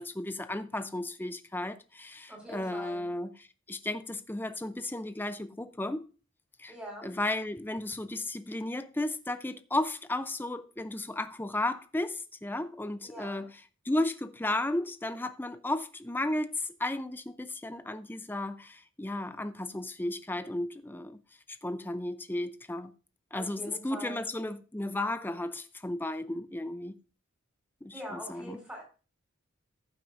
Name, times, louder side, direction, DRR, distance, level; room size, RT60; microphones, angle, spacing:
voice 1, 0.0-6.0 6.6-6.7 7.0-13.5 13.8-21.2 21.6-22.9 23.3-27.0 27.8-28.6, left 1 dB, 10° left, 0.5 m, -34 dB
voice 2, 2.3-3.0 6.7-7.1 13.0-13.4 23.3-24.2 27.9-28.8, equal, 5° right, 4.8 m, -43 dB
14.5 x 8.0 x 2.6 m
head